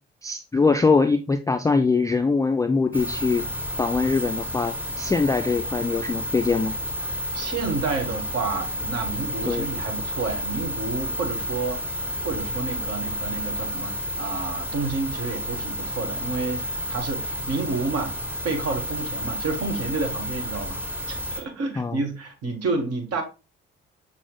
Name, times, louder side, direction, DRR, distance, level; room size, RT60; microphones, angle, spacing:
voice 1, 0.2-3.4 3.8-6.7 9.4-9.7 21.8-22.0, left 4 dB, 10° left, 0.3 m, -22 dB
sound 1, 2.9-21.4, equal, 5° right, 1.0 m, -31 dB
voice 2, 7.1-18.2 18.4-23.2, right 3 dB, 50° right, 1.2 m, -30 dB
6.0 x 2.1 x 3.6 m
figure-of-eight pair, 40°, 31 cm